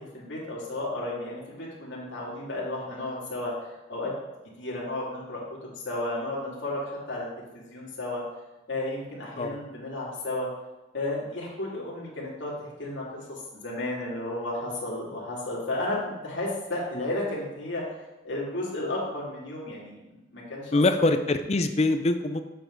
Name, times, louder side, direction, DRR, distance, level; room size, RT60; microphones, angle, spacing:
voice 1, 0.0-4.1 4.6-5.4 5.8-7.3 7.5-8.2 8.7-10.5 10.9-13.0 13.6-17.8 18.2-19.9 20.3-21.1, left 1 dB, 75° left, -6 dB, 2.4 m, -33 dB
voice 2, 20.7-22.4, left 2 dB, 35° left, 9 dB, 0.4 m, -23 dB
7.9 x 7.0 x 3.8 m, 1.1 s
head